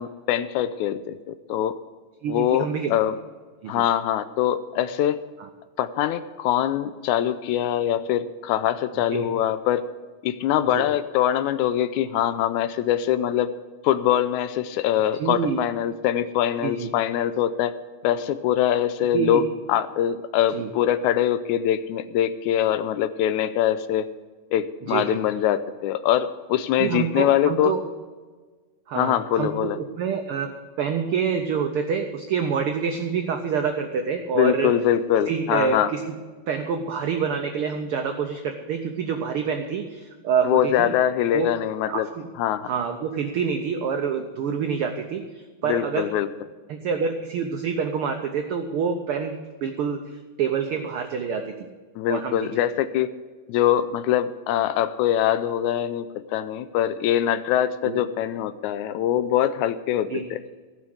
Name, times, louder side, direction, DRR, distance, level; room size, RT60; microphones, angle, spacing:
voice 1, 0.0-1.8 2.3-3.1 3.7-5.2 5.8-9.8 10.2-13.5 13.8-17.8 18.0-24.1 24.5-27.7 29.0-29.8 34.4-35.9 40.4-42.1 42.4-42.7 45.7-46.3 52.0-53.1 53.5-56.1 56.3-60.4, left 11 dB, 80° left, 13 dB, 1.9 m, -23 dB
voice 2, 2.2-2.9 3.6-3.9 5.4-5.5 9.1-9.3 10.7-10.9 15.2-15.6 16.6-16.9 19.1-19.5 20.5-20.7 24.8-25.2 26.8-27.8 28.9-30.5 30.8-34.7 35.3-36.0 36.5-40.9 41.3-41.5 41.9-42.3 42.6-46.1 46.7-51.7 52.1-52.6 57.8-58.0 60.1-60.2, right 6 dB, 90° right, 5 dB, 1.2 m, -27 dB
15.0 x 6.3 x 7.9 m, 1.4 s
omnidirectional pair, 3.5 m